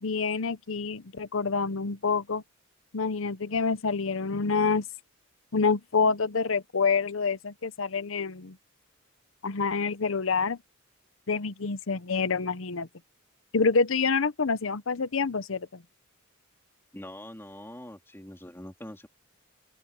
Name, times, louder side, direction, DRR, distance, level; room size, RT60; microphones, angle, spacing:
voice 1, 0.0-2.4 2.9-4.9 5.5-8.6 9.4-10.6 11.3-12.9 13.5-15.8, left 4 dB, 70° left, 0.8 m, -27 dB
voice 2, 16.9-19.1, left 1 dB, 10° left, 3.1 m, -43 dB
open air
head